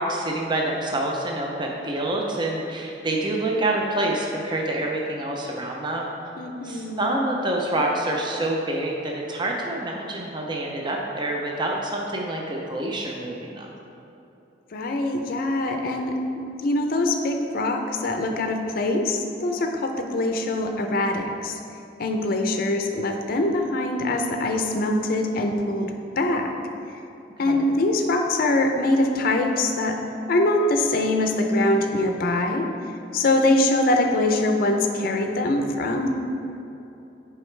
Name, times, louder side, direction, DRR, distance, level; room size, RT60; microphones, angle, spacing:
voice 1, 0.0-6.1 6.6-13.7 27.5-27.6, right 1 dB, 25° right, -1 dB, 0.5 m, -27 dB
voice 2, 6.4-7.2 14.7-16.2 16.6-21.6 22.0-26.5 27.4-30.0 30.3-32.7 33.1-36.1, left 2 dB, 55° left, 4 dB, 0.5 m, -23 dB
7.5 x 4.8 x 3.2 m, 2.9 s
head